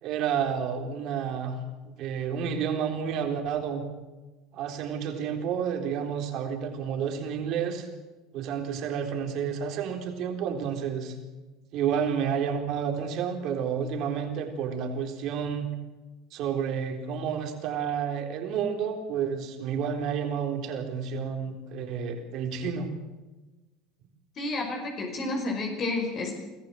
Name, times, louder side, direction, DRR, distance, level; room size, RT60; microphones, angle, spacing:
voice 1, 0.0-1.6 1.8-3.9 4.5-7.9 8.3-11.1 11.7-15.7 16.3-22.9, right 7 dB, 60° right, 4 dB, 3.8 m, -30 dB
voice 2, 24.4-26.4, left 2 dB, 45° left, 2 dB, 5.5 m, -30 dB
24.0 x 14.5 x 7.8 m, 1.2 s
supercardioid pair, 95°, 0 cm